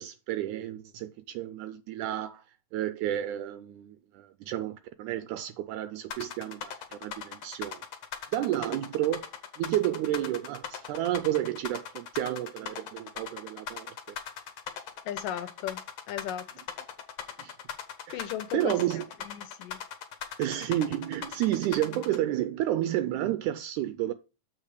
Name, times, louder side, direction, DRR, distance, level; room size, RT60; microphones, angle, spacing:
voice 1, 0.0-2.4 2.7-7.8 8.3-9.3 9.6-14.0 17.4-17.6 18.1-18.3 18.5-19.1 20.4-24.1, right 13 dB, 80° right, 1.9 m, -31 dB
sound 1, 6.1-22.2, left 8 dB, 65° left, 1.8 m, -39 dB
voice 2, 15.1-16.5 18.1-18.8 19.2-19.8, left 11 dB, 85° left, 2.5 m, -36 dB
7.4 x 5.1 x 4.9 m
omnidirectional pair, 3.8 m